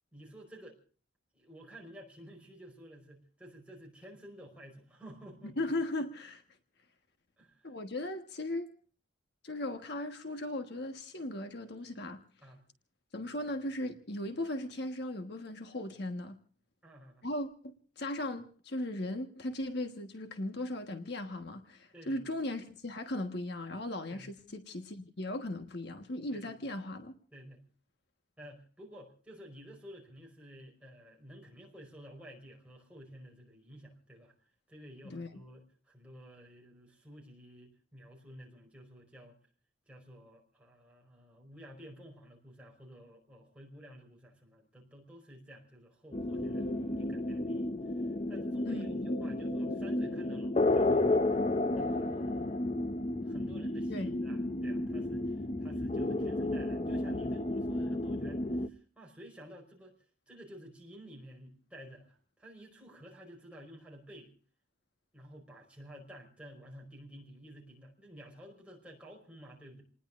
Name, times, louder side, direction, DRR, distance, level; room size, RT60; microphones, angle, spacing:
voice 1, 0.1-0.8 1.3-5.6 7.4-7.7 12.4-12.6 16.8-17.3 21.9-22.3 24.1-24.3 26.3-26.6 27.3-27.6 28.4-34.3 34.7-39.4 39.9-51.1 51.8-52.6 53.2-59.9 60.3-64.3 65.1-69.8, equal, 5° right, 4.9 m, -52 dB
voice 2, 5.4-6.4 7.6-8.7 9.4-12.2 13.1-16.4 17.2-17.5 18.0-27.2 35.0-35.3 48.7-49.1 53.9-54.1, left 1 dB, 60° left, 1.3 m, -37 dB
sound 1, 46.1-58.7, left 2 dB, 30° left, 0.7 m, -32 dB
28.5 x 20.0 x 2.5 m
head